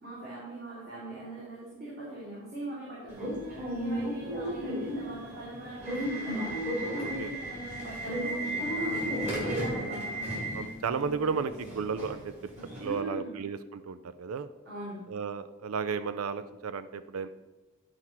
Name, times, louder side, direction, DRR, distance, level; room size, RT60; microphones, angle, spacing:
voice 1, 0.0-9.1 9.4-10.2 12.8-13.3 14.7-15.0, right 1 dB, 50° right, -10 dB, 3.5 m, -41 dB
Subway metro underground / Alarm, 3.1-12.9, equal, 30° right, 3.2 m, -34 dB
voice 2, 10.5-12.5 12.8-14.5 15.1-17.3, right 5 dB, 90° right, 13 dB, 0.4 m, -33 dB
11.5 x 4.5 x 5.9 m, 1.1 s
head